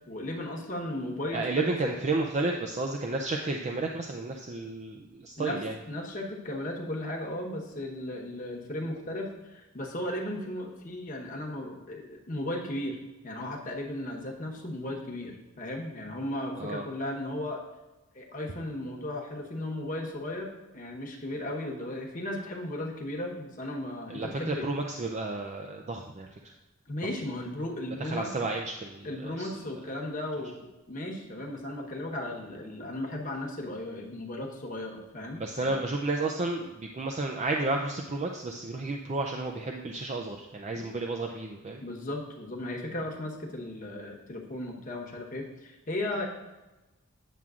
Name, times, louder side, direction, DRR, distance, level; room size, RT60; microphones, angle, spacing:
voice 1, 0.1-1.9 5.4-5.6 5.9-17.6 18.1-24.7 26.9-28.3 29.0-30.5 30.9-35.7 40.7-40.9 41.8-46.3, left 1 dB, 40° left, 0 dB, 1.0 m, -36 dB
voice 2, 1.3-5.7 16.6-16.9 24.1-26.5 28.0-29.5 35.3-41.8, right 2 dB, 30° right, 2 dB, 0.4 m, -32 dB
9.1 x 7.1 x 2.4 m, 1.1 s
head